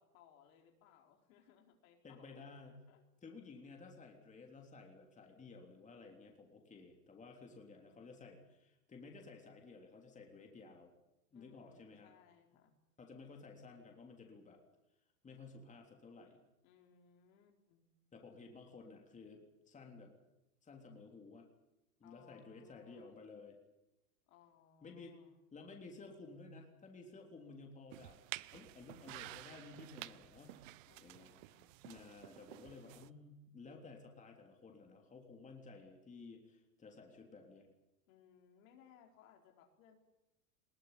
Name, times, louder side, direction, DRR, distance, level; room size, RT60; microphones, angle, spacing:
voice 1, 0.0-2.4 2.9-3.0 7.3-8.4 11.3-12.8 16.6-17.9 22.0-23.1 24.3-25.4 30.9-31.8 38.1-40.0, left 8 dB, 60° left, 4 dB, 4.4 m, -66 dB
voice 2, 2.0-2.7 3.2-10.9 11.3-12.1 13.0-14.6 15.2-16.4 18.1-20.1 20.6-21.5 22.0-23.6 24.8-25.2 25.5-28.2 28.5-30.7 31.0-31.3 31.8-37.7, left 4 dB, 15° left, 2 dB, 3.4 m, -55 dB
sound 1, 27.9-33.1, right 19 dB, 55° right, 0.9 m, -51 dB
21.0 x 18.0 x 9.9 m, 0.92 s
supercardioid pair, 130°, 46 cm